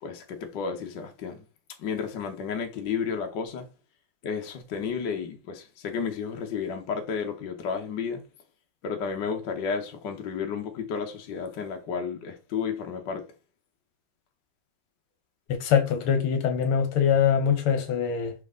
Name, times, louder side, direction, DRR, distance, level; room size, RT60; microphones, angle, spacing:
voice 1, 0.0-1.4 1.8-3.7 4.2-8.2 8.8-13.3, left 6 dB, 60° left, 1.6 m, -32 dB
voice 2, 15.5-18.3, left 7 dB, 75° left, 1.9 m, -23 dB
6.1 x 4.2 x 3.7 m
omnidirectional pair, 2.4 m